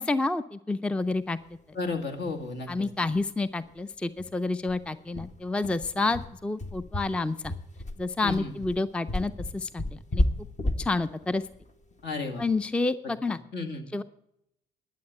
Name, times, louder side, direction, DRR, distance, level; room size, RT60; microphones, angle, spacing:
voice 1, 0.0-1.4 2.7-7.5 8.0-10.2 10.8-11.4 12.4-13.4 13.9-14.0, left 3 dB, 5° left, 14 dB, 0.4 m, -29 dB
voice 2, 1.8-2.9 8.2-8.5 12.0-12.5 13.5-13.8, left 3 dB, 60° left, 4 dB, 2.1 m, -33 dB
sound 1, 2.3-2.4 2.7-2.8 3.1-3.3 3.6-3.7 4.2-12.6, left 1 dB, 40° left, 1.5 m, -32 dB
11.5 x 7.5 x 7.6 m, 0.80 s
supercardioid pair, 60°, 20 cm